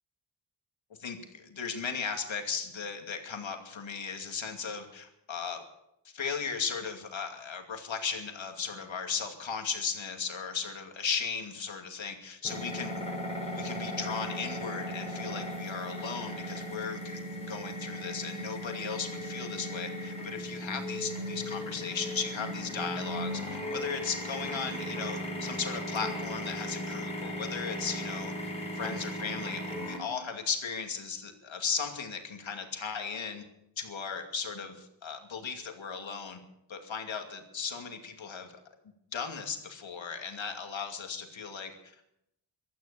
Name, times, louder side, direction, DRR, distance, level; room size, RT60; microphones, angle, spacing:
voice 1, 1.0-5.6 6.1-13.1 13.5-28.3 28.7-33.4 33.8-36.4 36.7-38.5 39.1-41.7, left 6 dB, 75° left, 4 dB, 2.6 m, -36 dB
sound 1, 12.4-30.0, equal, 15° left, 4.6 m, -37 dB
16.0 x 13.0 x 6.8 m, 0.79 s
wide cardioid pair, 140°, 47 cm